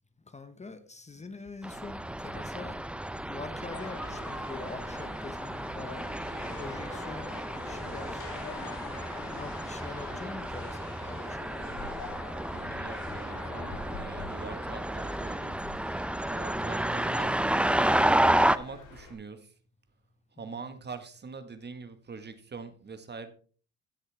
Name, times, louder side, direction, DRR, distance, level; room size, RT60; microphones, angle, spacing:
voice 1, 0.3-2.7 3.3-6.0 6.6-7.4 7.6-8.8 9.3-11.4 20.4-20.5, left 3 dB, 20° left, 1.1 m, -44 dB
sound 1, 1.6-18.6, right 1 dB, 5° right, 0.5 m, -31 dB
sound 2, 1.7-19.0, left 1 dB, 65° left, 3.9 m, -54 dB
sound 3, 3.7-19.1, left 4 dB, 85° left, 4.2 m, -45 dB
voice 2, 12.5-15.6 16.3-19.6 20.3-23.3, right 4 dB, 35° right, 1.4 m, -44 dB
16.5 x 6.4 x 3.4 m
cardioid pair, 90°, 30 cm